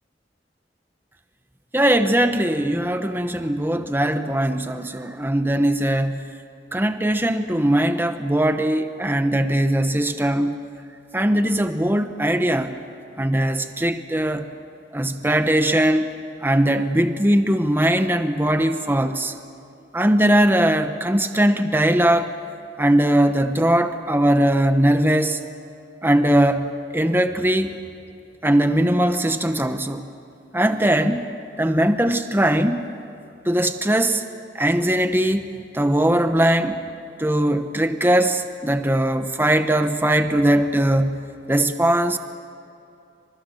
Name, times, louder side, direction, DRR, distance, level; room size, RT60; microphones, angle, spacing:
voice 1, 1.7-6.3 6.7-10.6 11.1-12.7 13.2-14.5 14.9-16.1 16.4-19.3 19.9-22.3 22.8-25.4 26.0-27.7 28.4-30.1 30.5-31.2 31.6-32.8 33.4-34.2 34.5-35.5 35.7-36.8 37.2-41.2 41.5-42.2, right 1 dB, 10° right, 8 dB, 1.0 m, -20 dB
28.5 x 26.0 x 6.4 m, 2.6 s
head